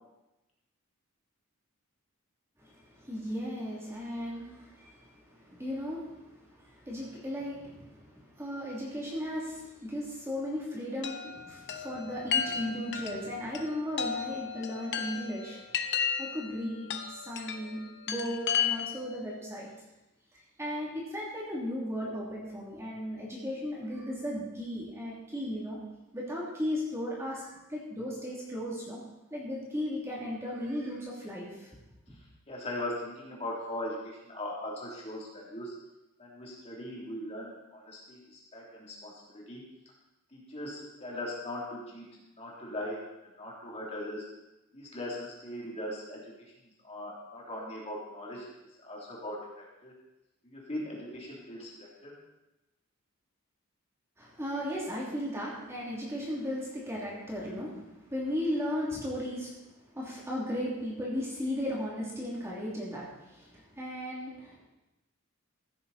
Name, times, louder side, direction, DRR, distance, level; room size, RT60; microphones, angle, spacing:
voice 1, 2.6-15.6 16.2-19.7 20.6-25.8 26.1-29.0 29.3-32.2 54.2-59.6 59.9-64.7, equal, 10° right, -5 dB, 2.8 m, -36 dB
Chime, 11.0-19.1, left 7 dB, 55° left, 0.9 m, -34 dB
voice 2, 32.1-35.7 36.2-39.6 40.3-44.3 44.7-46.3 46.6-48.5 48.8-50.0 50.4-52.2, left 1 dB, 30° left, -4 dB, 3.2 m, -40 dB
15.5 x 9.5 x 4.2 m, 0.98 s
head